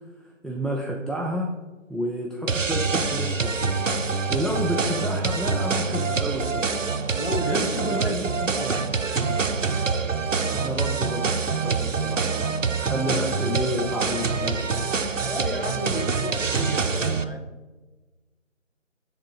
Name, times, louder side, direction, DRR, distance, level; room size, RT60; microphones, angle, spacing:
voice 1, 0.4-1.5 1.9-3.9 4.3-6.6 7.4-8.9 10.5-12.3 12.8-14.8, equal, ahead, -2 dB, 0.4 m, -30 dB
sound 1, 2.5-17.2, right 4 dB, 75° right, 0.6 m, -25 dB
voice 2, 7.1-9.2 15.2-17.5, left 1 dB, 45° left, 4 dB, 0.8 m, -33 dB
11.0 x 3.7 x 3.8 m, 1.2 s
figure-of-eight pair, 175°, 39 cm